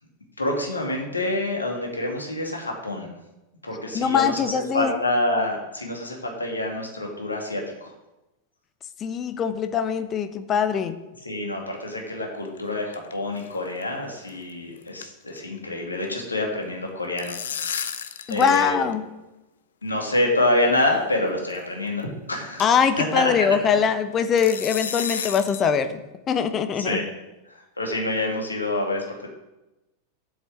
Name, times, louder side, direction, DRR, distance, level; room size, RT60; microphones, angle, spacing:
voice 1, 0.4-3.1 3.6-7.9 11.2-17.8 18.3-18.9 19.8-22.6 23.0-23.3 26.7-27.0 27.5-29.3, left 1 dB, 80° left, 0 dB, 2.4 m, -27 dB
voice 2, 3.9-4.9 9.0-11.0 18.3-19.0 22.6-26.0 26.3-27.0, left 7 dB, 30° left, 10 dB, 0.9 m, -22 dB
sound 1, 12.3-13.1 13.4-13.5 13.8-13.9 14.3-14.5 14.8-16.1 16.9-18.7 18.9-19.0 19.9-20.0 20.8-21.0 21.5-21.6 22.0-22.1 22.6-22.9 24.4-25.7, left 7 dB, 65° left, 0.7 m, -33 dB
8.0 x 7.5 x 7.5 m, 0.99 s
figure-of-eight pair, 90°, 0 cm